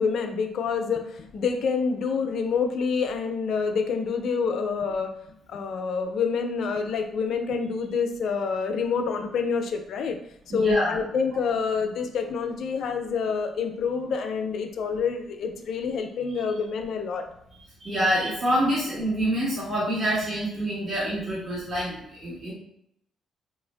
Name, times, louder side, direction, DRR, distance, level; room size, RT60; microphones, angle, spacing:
voice 1, 0.0-5.2 5.5-10.2 10.5-17.2, left 5 dB, 70° left, 5 dB, 0.3 m, -27 dB
voice 2, 10.5-11.0 17.8-22.5, equal, 45° right, -8 dB, 1.2 m, -26 dB
3.1 x 2.4 x 2.2 m, 0.75 s
cardioid pair, 90°, 0 cm